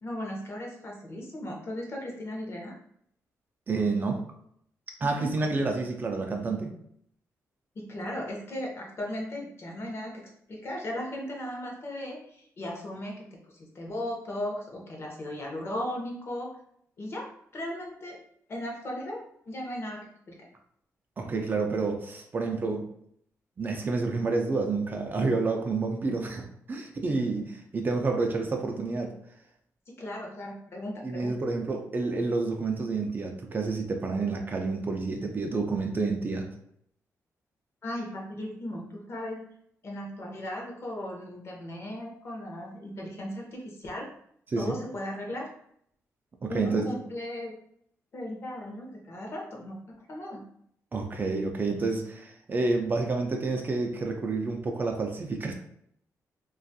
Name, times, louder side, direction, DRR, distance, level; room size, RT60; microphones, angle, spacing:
voice 1, 0.0-2.7 5.0-5.3 7.8-16.5 17.0-18.2 18.5-20.3 27.4-27.5 29.9-31.4 37.8-39.5 39.8-44.1 44.6-45.5 46.5-47.5 48.1-49.8 50.1-50.4, left 1 dB, 45° left, -1 dB, 0.7 m, -37 dB
voice 2, 3.7-4.2 5.0-6.7 21.2-22.9 23.6-29.1 31.0-36.5 44.5-44.8 46.4-47.0 50.9-55.5, right 3 dB, 35° right, 3 dB, 0.4 m, -29 dB
2.5 x 2.3 x 2.6 m, 0.69 s
cardioid pair, 120°, 6 cm